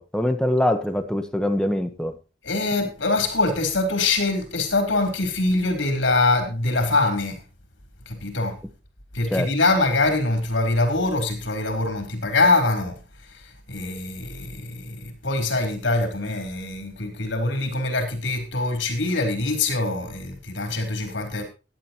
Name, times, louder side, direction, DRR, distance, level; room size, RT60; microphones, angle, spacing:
voice 1, 0.0-2.1 9.3-9.5, left 1 dB, 5° left, 1.3 m, -23 dB
voice 2, 2.4-7.4 8.1-8.5 9.1-13.0 13.7-21.4, left 2 dB, 90° left, 4.2 m, -23 dB
16.5 x 11.0 x 3.1 m
head